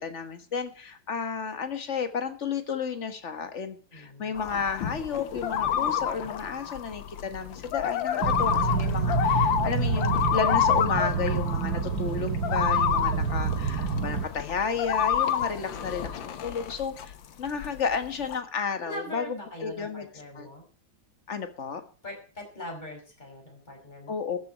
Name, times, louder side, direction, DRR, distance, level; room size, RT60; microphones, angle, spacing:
voice 1, 0.0-16.1 16.4-19.3 19.6-20.1 20.3-20.5 21.3-21.8 24.1-24.4, left 5 dB, 40° left, 8 dB, 1.6 m, -32 dB
voice 2, 3.9-4.4 15.7-16.4 18.8-20.6 22.0-24.1, left 1 dB, 20° left, 0 dB, 5.5 m, -42 dB
sound 1, 4.4-17.1 17.4-18.4, left 9 dB, 90° left, 1.8 m, -29 dB
sound 2, 8.2-14.2, right 5 dB, 65° right, 1.8 m, -28 dB
13.5 x 7.2 x 8.6 m, 0.41 s
omnidirectional pair, 2.0 m